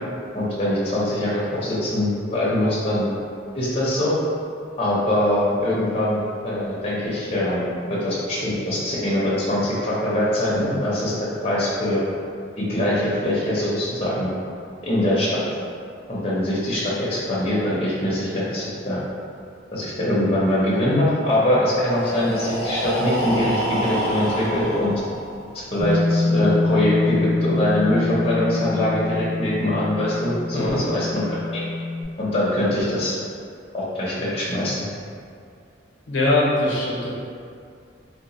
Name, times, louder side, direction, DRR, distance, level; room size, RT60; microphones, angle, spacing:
voice 1, 0.3-3.1 3.5-4.2 4.8-12.0 12.6-14.3 14.8-15.4 16.1-19.0 19.7-24.9 25.7-31.6 32.2-33.1 33.7-34.8, left 1 dB, 30° left, -8 dB, 0.6 m, -23 dB
Breathing, 21.8-25.6, right 1 dB, 20° right, 1.3 m, -28 dB
Bass guitar, 25.8-32.0, left 2 dB, 35° right, 1.0 m, -24 dB
voice 2, 36.1-37.1, left 2 dB, 80° left, -4 dB, 0.7 m, -21 dB
2.8 x 2.1 x 4.1 m, 2.3 s
head